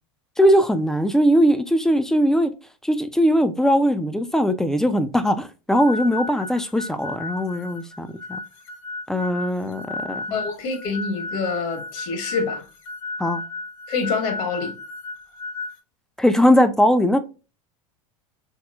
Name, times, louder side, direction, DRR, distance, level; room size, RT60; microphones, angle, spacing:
voice 1, 0.4-2.5 2.8-8.4 9.1-10.3 13.2-13.4 16.2-17.2, equal, 5° left, 0.4 m, -20 dB
sound 1, 5.7-15.8, left 3 dB, 80° left, 0.7 m, -34 dB
voice 2, 10.3-12.6 13.9-14.8, left 4 dB, 55° left, 1.3 m, -26 dB
3.2 x 3.0 x 2.2 m
hypercardioid pair, 95°, 17 cm